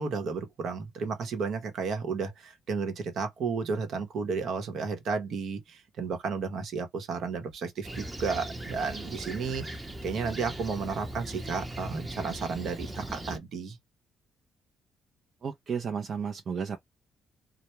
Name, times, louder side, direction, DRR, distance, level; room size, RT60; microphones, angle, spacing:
voice 1, 0.0-13.8, right 5 dB, 65° right, 0.9 m, -33 dB
Fixed-wing aircraft airplane, 7.8-13.4, right 1 dB, 15° right, 0.8 m, -39 dB
voice 2, 15.4-16.8, right 6 dB, 50° right, 0.5 m, -33 dB
2.2 x 2.1 x 2.9 m
cardioid pair, 95°, 0 cm